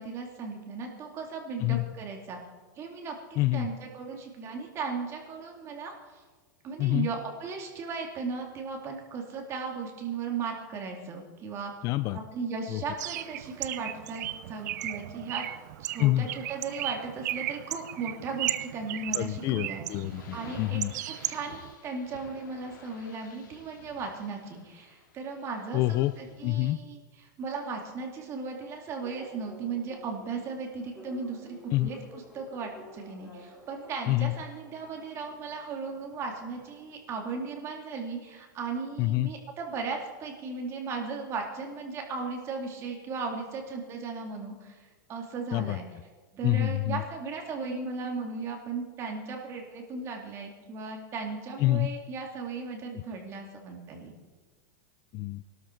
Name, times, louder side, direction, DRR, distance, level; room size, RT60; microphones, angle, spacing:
voice 1, 0.0-2.4 2.8-6.2 6.6-11.7 12.1-15.5 15.8-19.8 20.3-20.8 21.3-27.0 27.4-45.8 46.3-54.1, right 4 dB, 25° right, 2 dB, 2.5 m, -36 dB
voice 2, 1.6-1.9 3.4-3.7 6.8-7.1 11.8-12.2 12.7-12.8 16.0-16.3 19.1-20.9 25.7-26.1 26.4-26.8 31.7-31.9 34.1-34.4 39.0-39.3 45.5-45.8 46.4-47.0 51.6-51.9 52.9-53.0 55.1-55.4, left 17 dB, 35° left, 15 dB, 0.4 m, -27 dB
Bird, 13.0-21.7, right 14 dB, 65° right, 0.6 m, -36 dB
sound 1, 19.9-26.6, left 6 dB, 85° left, 2.9 m, -52 dB
sound 2, 29.0-37.0, equal, ahead, 3.9 m, -51 dB
20.5 x 13.0 x 4.6 m, 1.3 s
supercardioid pair, 155°, 10 cm